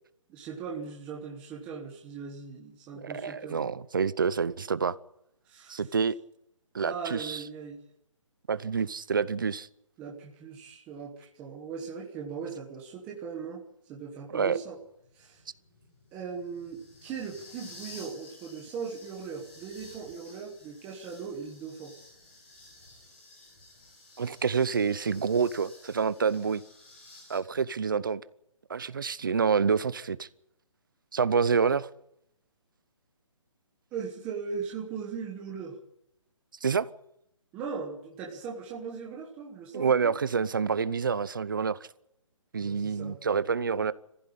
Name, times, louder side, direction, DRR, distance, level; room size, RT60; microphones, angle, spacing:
voice 1, 0.3-3.7 5.5-5.8 6.7-7.8 10.0-13.6 13.9-14.8 15.1-15.4 16.1-21.9 33.9-35.8 37.5-40.1 42.6-43.2, right 6 dB, 5° right, 1.1 m, -39 dB
voice 2, 2.9-5.0 5.7-6.2 6.7-7.4 8.5-9.7 14.3-14.6 24.2-26.6 27.3-28.2 28.7-30.3 31.1-31.9 36.6-36.9 39.7-41.8 42.5-43.9, right 6 dB, 40° right, 0.7 m, -27 dB
sound 1, 14.3-27.4, left 2 dB, 25° left, 5.2 m, -53 dB
22.0 x 15.5 x 8.6 m
hypercardioid pair, 180°, 17 cm